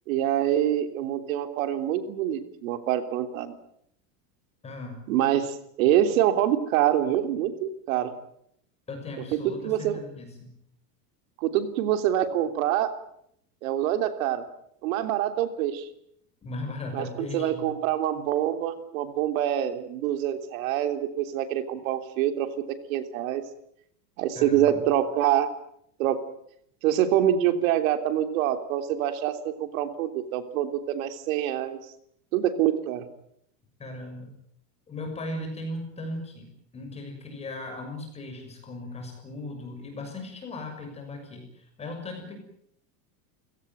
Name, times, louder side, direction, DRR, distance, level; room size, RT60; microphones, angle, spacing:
voice 1, 0.1-3.5 5.1-8.1 9.4-10.0 11.4-12.9 13.6-14.4 14.8-15.9 16.9-23.4 24.2-25.5 26.0-26.2 26.8-31.8 32.3-33.1, right 11 dB, 55° right, 9 dB, 3.3 m, -25 dB
voice 2, 4.6-5.0 8.9-10.5 16.4-17.6 24.3-24.9 33.8-34.3 34.9-36.5 36.7-42.3, left 2 dB, 15° left, 4 dB, 6.5 m, -37 dB
29.5 x 17.5 x 9.3 m, 0.72 s
supercardioid pair, 180°, 47 cm